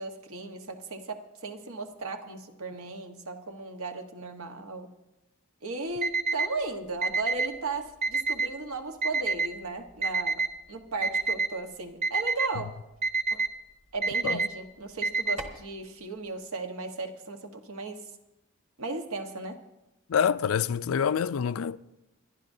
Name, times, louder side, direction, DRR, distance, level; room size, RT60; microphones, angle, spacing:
voice 1, 0.0-4.9 5.6-12.7 13.3-13.4 13.9-18.1 18.8-19.6, right 3 dB, 85° right, 1.3 m, -36 dB
Alarm, 6.0-6.5 7.0-7.5 8.0-8.5 9.0-9.5 10.0-10.5 11.0-11.5 12.0-12.5 13.0-13.5 14.0-14.5 15.0-15.6, right 4 dB, 30° right, 1.1 m, -27 dB
voice 2, 20.1-21.8, left 7 dB, 85° left, 0.4 m, -26 dB
29.0 x 11.5 x 2.7 m
head